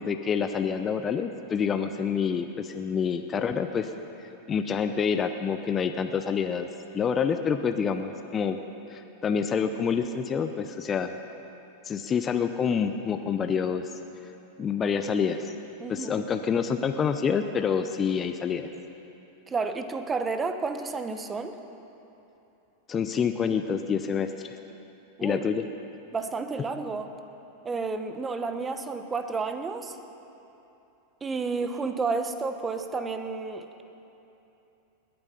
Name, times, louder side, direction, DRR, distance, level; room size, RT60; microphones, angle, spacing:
voice 1, 0.0-3.9 4.5-6.7 6.9-8.6 8.9-11.2 11.9-13.9 14.6-15.5 15.9-18.7 22.9-24.6 25.2-25.6, left 6 dB, 25° left, 7 dB, 0.7 m, -27 dB
voice 2, 15.8-16.2 19.5-21.6 25.2-25.5 26.1-27.1 27.6-30.0 31.2-33.8, right 4 dB, 20° right, 8 dB, 1.0 m, -31 dB
20.5 x 8.9 x 5.8 m, 2.9 s
hypercardioid pair, 105°, 0 cm